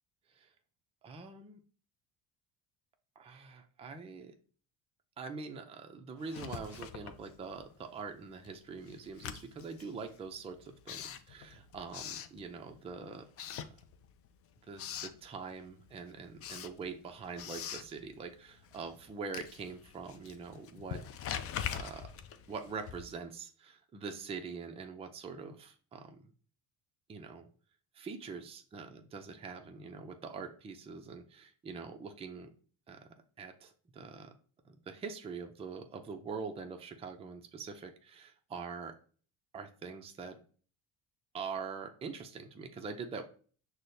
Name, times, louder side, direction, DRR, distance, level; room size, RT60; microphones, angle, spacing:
voice 1, 1.0-1.6 3.2-4.3 5.2-13.2 13.5-13.6 14.7-21.0 21.7-22.1 22.5-26.2 27.1-27.5 27.9-32.5 32.9-33.0 33.4-34.3 34.6-38.9 39.5-40.4 41.3-43.2, right 5 dB, 15° right, 4 dB, 0.4 m, -44 dB
Writing, 6.2-7.8 8.1-12.9 13.3-14.3 14.6-15.2 15.7-23.3, left 9 dB, 40° left, 0.4 m, -44 dB
6.1 x 2.1 x 2.7 m, 0.42 s
supercardioid pair, 100°, 36 cm